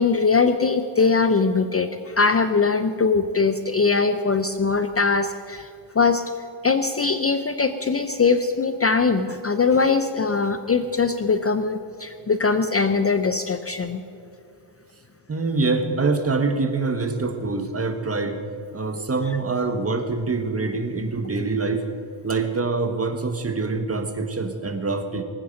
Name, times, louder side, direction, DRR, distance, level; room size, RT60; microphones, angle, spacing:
voice 1, 0.0-5.7 6.0-6.2 6.6-14.0, left 4 dB, 30° left, 9 dB, 0.5 m, -21 dB
voice 2, 15.3-18.4 18.7-21.8 22.2-25.2, right 3 dB, 30° right, 7 dB, 1.3 m, -25 dB
19.5 x 9.3 x 6.4 m, 2.4 s
wide cardioid pair, 120°, 49 cm